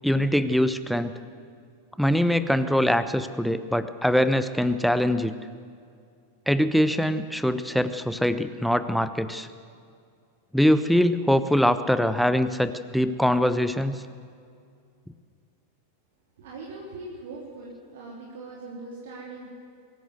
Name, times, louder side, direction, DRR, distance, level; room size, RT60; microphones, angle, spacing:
voice 1, 0.0-1.2 2.0-5.3 6.5-9.5 10.5-14.0, equal, ahead, 12 dB, 0.9 m, -23 dB
voice 2, 16.4-19.5, right 3 dB, 55° right, -3 dB, 3.2 m, -40 dB
23.5 x 14.5 x 8.1 m, 2.3 s
figure-of-eight pair, 90°, 0 cm